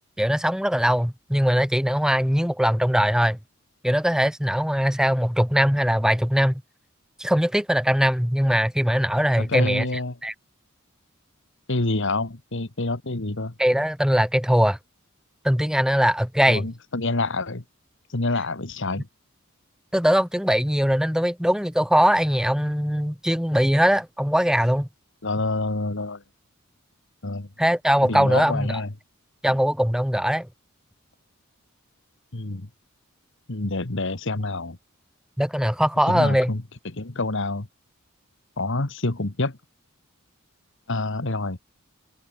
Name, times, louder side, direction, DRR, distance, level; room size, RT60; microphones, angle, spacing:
voice 1, 0.2-3.4 3.8-6.6 7.2-9.9 10.2-10.3 13.6-14.8 15.4-16.6 19.9-24.9 27.6-28.7 29.4-30.5 35.4-36.5, equal, 5° right, 2.9 m, -21 dB
voice 2, 9.4-10.2 11.7-13.5 16.5-17.6 18.1-19.1 25.2-26.2 27.2-27.5 28.0-28.9 32.3-32.7 33.5-34.8 36.1-37.7 38.6-39.6 40.9-41.6, left 2 dB, 60° left, 1.7 m, -27 dB
open air
head